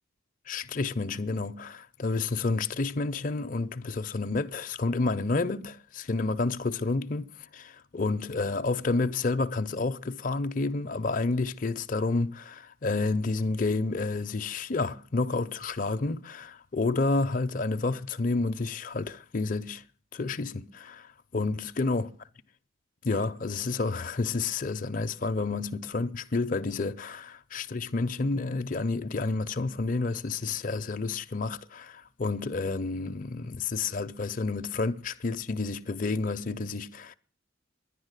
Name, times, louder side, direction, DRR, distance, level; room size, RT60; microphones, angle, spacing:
voice 1, 0.5-19.8 20.1-22.1 23.0-37.1, left 3 dB, 40° left, 0.6 m, -30 dB
11.0 x 9.9 x 8.1 m
head